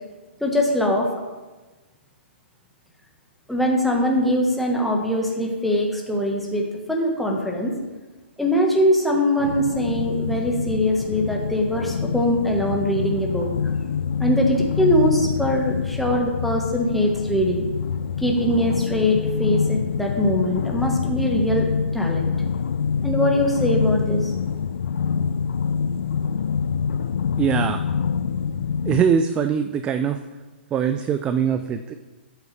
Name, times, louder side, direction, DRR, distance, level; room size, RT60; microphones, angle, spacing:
voice 1, 0.4-1.2 3.5-7.7 8.4-13.5 14.2-17.6 18.2-21.7 21.9-22.2 23.0-24.3, equal, ahead, -1 dB, 1.3 m, -22 dB
sound 1, 9.4-29.0, left 6 dB, 80° left, 0.3 m, -25 dB
voice 2, 27.4-27.8 28.8-30.2 30.7-31.9, right 7 dB, 15° right, 8 dB, 0.3 m, -22 dB
12.0 x 8.0 x 3.3 m, 1.2 s
hypercardioid pair, 150°, 7 cm